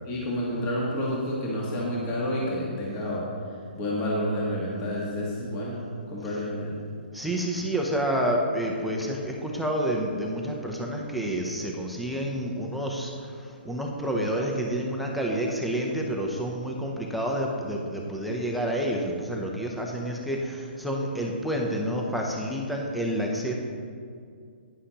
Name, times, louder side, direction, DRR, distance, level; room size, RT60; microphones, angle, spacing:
voice 1, 0.1-3.2 3.8-6.7, equal, 20° left, -4 dB, 1.5 m, -29 dB
voice 2, 7.1-23.6, right 1 dB, ahead, -1 dB, 0.6 m, -29 dB
11.0 x 9.8 x 2.9 m, 2.2 s
hypercardioid pair, 165°, 6 cm